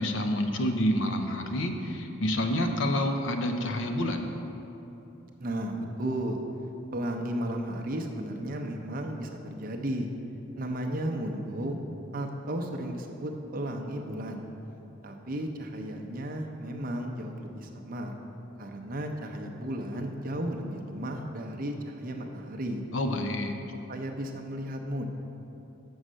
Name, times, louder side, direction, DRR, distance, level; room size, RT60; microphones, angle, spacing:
voice 1, 0.0-4.3 22.9-23.6, left 1 dB, 65° left, 5 dB, 0.6 m, -28 dB
voice 2, 5.4-6.4 6.9-10.1 10.6-11.8 12.1-14.5 15.0-18.1 18.6-22.8 23.9-25.1, right 1 dB, 45° right, 2 dB, 0.6 m, -34 dB
6.3 x 5.4 x 6.2 m, 3.0 s
head